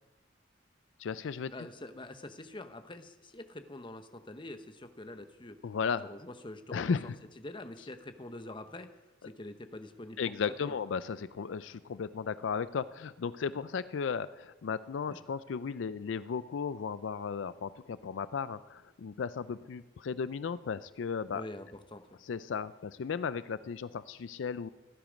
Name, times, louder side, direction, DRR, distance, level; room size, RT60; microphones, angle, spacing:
voice 1, 1.0-1.5 5.6-6.1 6.7-7.2 10.2-21.4 22.2-24.7, left 6 dB, 75° left, 15 dB, 0.4 m, -35 dB
voice 2, 1.5-5.6 6.0-7.0 7.4-8.9 9.2-10.8 15.1-15.2 21.3-22.2, left 1 dB, 25° left, 9 dB, 0.9 m, -45 dB
17.5 x 12.0 x 5.2 m, 1.1 s
head